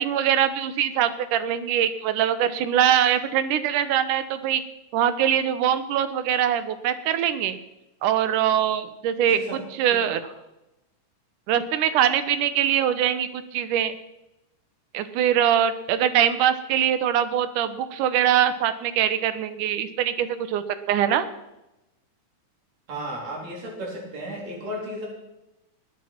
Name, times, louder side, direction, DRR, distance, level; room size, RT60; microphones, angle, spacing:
voice 1, 0.0-4.6 4.9-7.6 8.0-9.4 9.8-10.2 11.5-14.0 14.9-21.3, right 10 dB, 85° right, 12 dB, 2.5 m, -23 dB
voice 2, 9.3-9.6 9.9-10.0 22.9-25.1, equal, 60° right, -1 dB, 5.0 m, -34 dB
20.0 x 8.9 x 5.8 m, 0.93 s
omnidirectional pair, 3.5 m